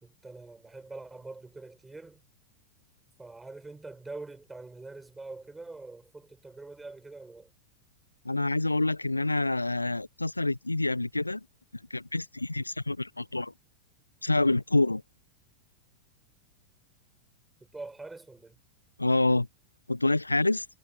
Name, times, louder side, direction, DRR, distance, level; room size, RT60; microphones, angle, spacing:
voice 1, 0.0-2.2 3.2-7.5 17.7-18.6, right 3 dB, 10° right, 3.2 m, -44 dB
voice 2, 8.2-11.4 11.7-13.5 14.2-15.0 19.0-19.5 19.9-20.7, left 2 dB, 85° left, 0.5 m, -27 dB
figure-of-eight pair, 90°, 0 cm